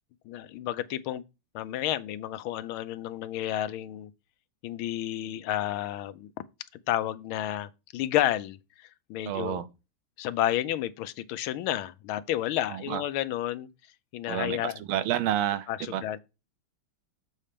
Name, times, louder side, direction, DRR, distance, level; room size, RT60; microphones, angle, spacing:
voice 1, 0.3-1.2 1.5-4.1 4.6-6.3 6.9-8.6 9.1-9.6 10.2-13.7 14.1-14.8 15.7-16.2, left 13 dB, 85° left, 1.5 m, -31 dB
voice 2, 9.3-9.7 12.7-13.0 14.3-16.0, right 11 dB, 80° right, 1.5 m, -30 dB
7.4 x 4.3 x 5.0 m
omnidirectional pair, 2.2 m